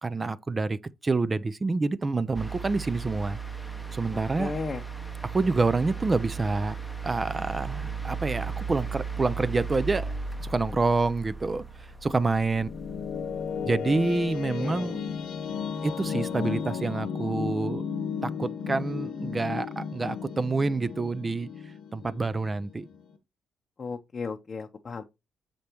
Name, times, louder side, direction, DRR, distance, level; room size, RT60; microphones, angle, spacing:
voice 1, 0.0-3.4 3.9-4.5 5.2-6.8 7.0-10.1 10.4-12.7 13.6-15.0 15.8-17.8 18.2-21.5 21.9-22.9, right 3 dB, 25° right, 0.4 m, -27 dB
sound 1, 2.3-14.6 15.9-16.0, right 5 dB, 5° right, 0.8 m, -36 dB
voice 2, 4.1-4.8 14.6-14.9 23.8-25.0, left 4 dB, 40° left, 0.7 m, -35 dB
sound 2, 12.5-23.1, left 6 dB, 80° left, 1.1 m, -34 dB
6.8 x 5.1 x 3.0 m
cardioid pair, 90°, 0 cm